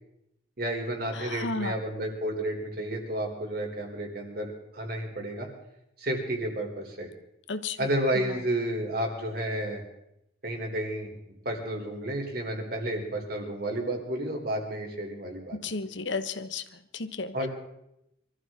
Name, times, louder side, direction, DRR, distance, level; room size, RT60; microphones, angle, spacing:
voice 1, 0.6-5.5 6.0-7.1 7.8-9.8 10.4-11.1 11.5-15.6 17.3-17.5, right 1 dB, 55° right, 1 dB, 3.7 m, -31 dB
voice 2, 1.1-1.8 7.5-7.8 8.1-8.4 15.5-16.6 16.9-17.5, left 3 dB, 85° left, 11 dB, 1.1 m, -33 dB
24.5 x 14.0 x 3.8 m, 0.82 s
head